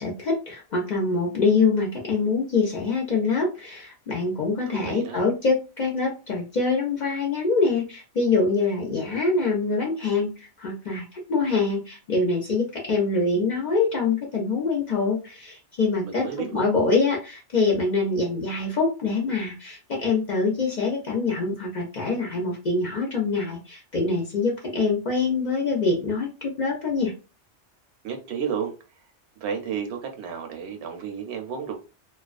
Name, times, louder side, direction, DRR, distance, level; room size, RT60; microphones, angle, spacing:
voice 1, 0.0-27.1, left 4 dB, 50° left, 0.6 m, -25 dB
voice 2, 4.7-5.2 16.0-16.7 28.0-28.7 29.4-31.8, right 7 dB, 75° right, 0.8 m, -32 dB
2.4 x 2.2 x 2.4 m
omnidirectional pair, 1.2 m